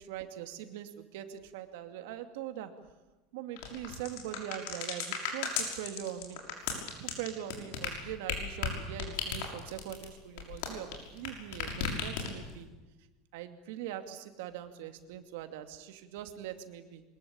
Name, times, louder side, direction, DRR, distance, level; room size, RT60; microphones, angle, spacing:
voice 1, 0.0-2.7 3.3-6.7 7.0-12.7 13.3-17.0, right 11 dB, 75° right, 7 dB, 2.6 m, -42 dB
sound 1, 3.6-11.3 11.5-12.6, left 6 dB, 65° left, 6.3 m, -35 dB
23.5 x 21.5 x 8.9 m, 1.1 s
supercardioid pair, 165°, 0 cm